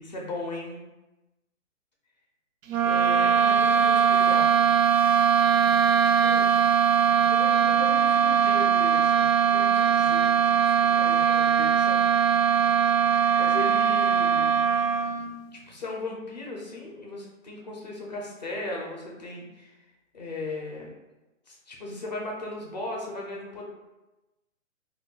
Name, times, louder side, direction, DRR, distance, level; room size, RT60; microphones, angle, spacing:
voice 1, 0.1-0.9 2.8-4.5 6.0-6.5 7.3-12.1 13.3-14.7 15.5-19.7 20.1-20.9 21.5-23.6, left 2 dB, 35° left, -1 dB, 0.4 m, -37 dB
sound 1, 2.7-15.4, right 7 dB, 80° right, 0.5 m, -21 dB
2.2 x 2.2 x 3.8 m, 1.0 s
hypercardioid pair, 160°, 39 cm